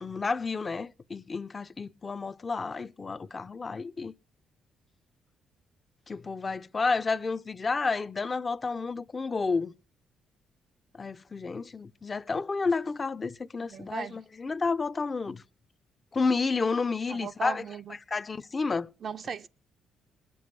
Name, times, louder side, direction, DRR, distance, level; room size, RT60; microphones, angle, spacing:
voice 1, 0.0-4.1 6.1-9.8 11.0-15.4 16.1-17.6 18.1-18.9, left 4 dB, 30° left, 0.5 m, -30 dB
voice 2, 13.6-14.2 17.1-18.0 19.0-19.5, right 6 dB, 50° right, 0.5 m, -37 dB
20.0 x 6.9 x 4.7 m
cardioid pair, 90°, 0 cm